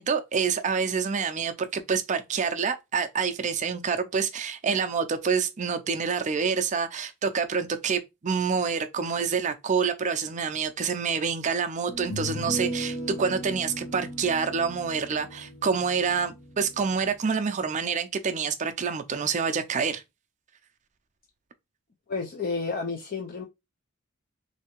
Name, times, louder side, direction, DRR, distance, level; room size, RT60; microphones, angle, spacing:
voice 1, 0.0-20.0, right 6 dB, 35° right, 0.4 m, -27 dB
sound 1, 11.9-17.1, equal, 75° left, 1.0 m, -37 dB
voice 2, 22.1-23.5, left 4 dB, 40° left, 0.4 m, -31 dB
3.2 x 2.7 x 3.0 m
head